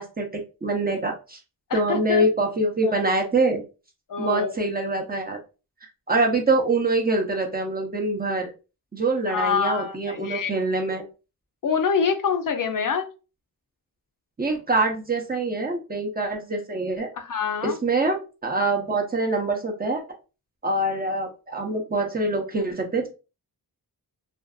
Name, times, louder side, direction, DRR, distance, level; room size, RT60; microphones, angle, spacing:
voice 1, 0.0-1.4 1.7-3.6 4.2-5.4 6.1-8.5 8.9-11.0 14.4-17.1 17.6-20.0 20.6-23.1, right 2 dB, 25° right, 1 dB, 0.6 m, -24 dB
voice 2, 1.7-2.3 2.8-3.0 4.1-4.5 9.3-10.5 11.6-13.1 17.2-17.8, left 6 dB, 55° left, 6 dB, 0.5 m, -26 dB
2.5 x 2.3 x 2.3 m, 0.32 s
wide cardioid pair, 90°, 38 cm